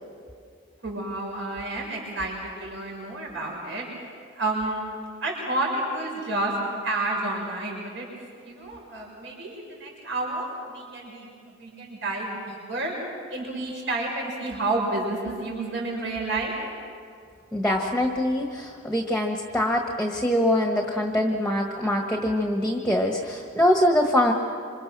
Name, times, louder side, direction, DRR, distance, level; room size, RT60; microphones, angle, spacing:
voice 1, 0.8-3.9 4.4-4.8 5.2-6.5 6.8-8.1 8.4-12.9 13.3-16.6, right 2 dB, 60° right, -1 dB, 6.0 m, -30 dB
voice 2, 17.5-24.3, left 1 dB, 5° left, 2 dB, 1.4 m, -23 dB
26.5 x 26.5 x 6.1 m, 2.3 s
head